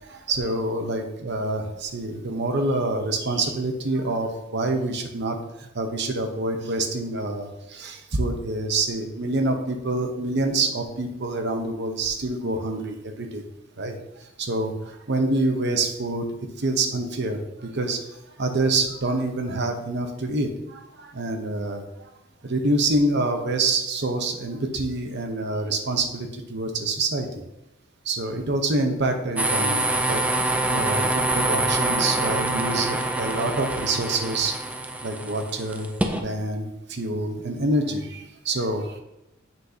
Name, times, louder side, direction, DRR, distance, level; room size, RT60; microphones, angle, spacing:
voice 1, 0.0-5.4 5.7-13.4 13.8-14.0 14.4-16.2 16.6-18.0 18.4-21.8 22.4-27.3 28.1-30.2 30.7-31.0 31.3-34.5 35.0-35.9 36.2-39.0, right 2 dB, 60° right, 5 dB, 0.9 m, -26 dB
sound 1, 29.4-36.2, right 2 dB, 5° right, 0.5 m, -25 dB
7.3 x 6.5 x 2.8 m, 0.90 s
head